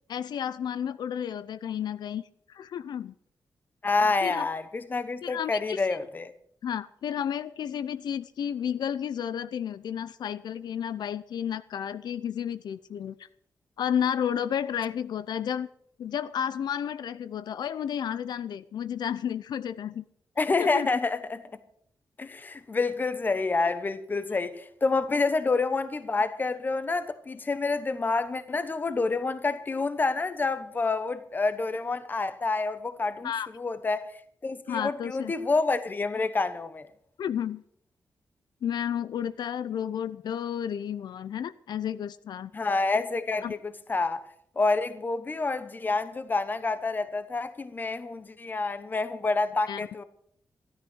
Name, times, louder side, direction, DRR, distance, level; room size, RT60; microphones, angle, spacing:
voice 1, 0.1-3.1 4.2-4.5 5.2-5.8 6.6-13.3 13.8-15.7 16.0-20.0 20.6-20.9 33.2-33.5 34.7-35.3 37.2-37.6 38.6-42.5 43.4-43.5 49.7-49.8, left 9 dB, 85° left, 0.6 m, -32 dB
voice 2, 3.8-6.3 20.4-21.4 22.2-34.0 34.4-36.9 42.5-44.2 44.6-50.0, left 3 dB, 25° left, 1.0 m, -28 dB
13.5 x 13.0 x 6.3 m
wide cardioid pair, 165°, 7 cm